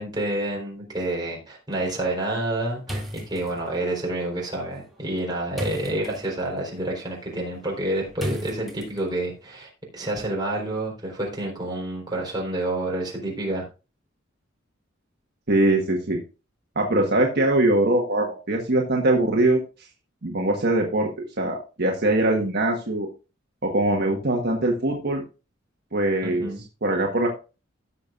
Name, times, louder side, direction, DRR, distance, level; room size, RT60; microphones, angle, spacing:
voice 1, 0.0-13.7 26.2-26.6, right 1 dB, 20° right, -2 dB, 4.1 m, -28 dB
sound 1, 2.8-9.3, equal, ahead, 2.5 m, -38 dB
voice 2, 15.5-16.2 16.7-19.6 20.2-21.1 21.4-23.1 23.6-25.2 25.9-26.5 26.8-27.3, right 1 dB, 55° right, 0 dB, 1.5 m, -22 dB
16.5 x 6.8 x 2.5 m, 0.31 s
head